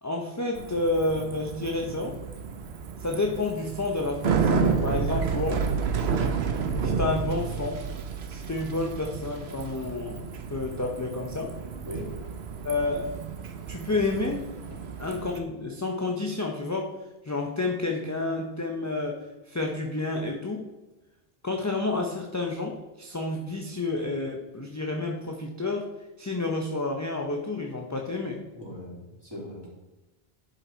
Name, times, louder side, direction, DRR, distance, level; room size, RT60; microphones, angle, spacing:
voice 1, 0.0-2.2 3.0-5.7 6.8-7.9 8.3-11.6 12.6-13.1 13.7-14.5 15.0-17.0 17.2-20.7 21.4-28.4, left 2 dB, 20° left, 1 dB, 0.7 m, -30 dB
Bicycle, 0.6-15.4, right 5 dB, 90° right, 1.1 m, -31 dB
voice 2, 28.5-29.7, left 1 dB, 25° right, -6 dB, 3.6 m, -39 dB
11.0 x 5.4 x 4.4 m, 1.1 s
omnidirectional pair, 1.1 m